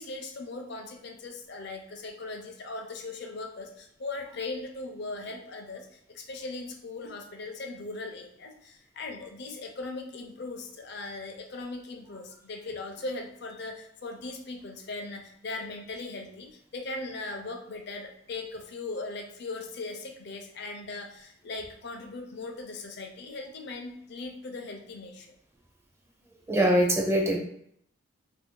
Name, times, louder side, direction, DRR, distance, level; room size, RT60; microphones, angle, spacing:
voice 1, 0.0-25.3, left 3 dB, 55° left, 3 dB, 0.6 m, -39 dB
voice 2, 26.5-27.4, right 1 dB, 15° right, 0 dB, 0.4 m, -23 dB
2.6 x 2.6 x 3.7 m, 0.70 s
head